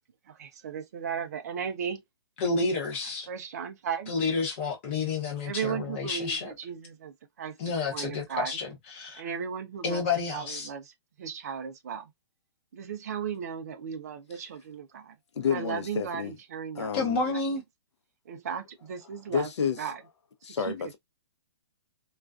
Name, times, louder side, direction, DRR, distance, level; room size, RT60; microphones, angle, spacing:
voice 1, 0.3-2.0 3.3-4.1 5.4-8.5 9.2-10.1 10.3-12.1 12.7-15.1 15.5-16.9 17.2-17.4 18.3-19.5 19.8-20.0, right 7 dB, 35° right, 0.4 m, -36 dB
voice 2, 2.4-3.3 4.1-6.5 7.6-9.2 9.8-10.7 16.9-17.6, left 4 dB, 25° left, 0.8 m, -30 dB
voice 3, 15.3-16.4 16.7-17.2 19.3-19.9 20.4-21.0, left 7 dB, 75° left, 0.6 m, -30 dB
2.3 x 2.3 x 2.3 m
hypercardioid pair, 175°, 15 cm